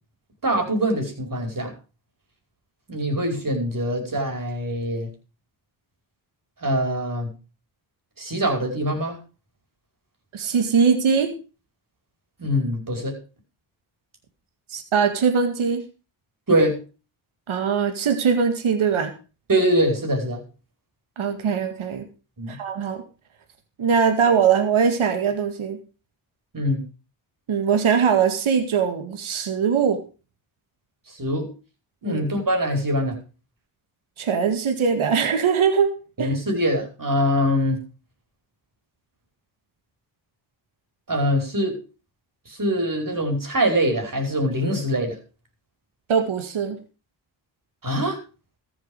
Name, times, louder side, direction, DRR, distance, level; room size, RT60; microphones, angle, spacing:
voice 1, 0.4-1.7 2.9-5.1 6.6-7.3 8.2-9.2 12.4-13.2 16.5-16.8 19.5-20.4 22.4-22.6 26.5-26.8 31.1-31.5 32.0-33.2 36.2-37.8 41.1-41.8 42.5-45.2 47.8-48.2, equal, 40° right, 3 dB, 4.9 m, -23 dB
voice 2, 10.3-11.3 14.7-15.8 17.5-19.1 21.2-22.1 22.5-23.0 23.8-25.8 27.5-30.0 32.0-32.2 34.2-35.9 36.2-36.3 46.1-46.8, right 6 dB, 75° right, 7 dB, 2.1 m, -21 dB
14.0 x 8.2 x 5.3 m, 0.34 s
supercardioid pair, 45°, 50 cm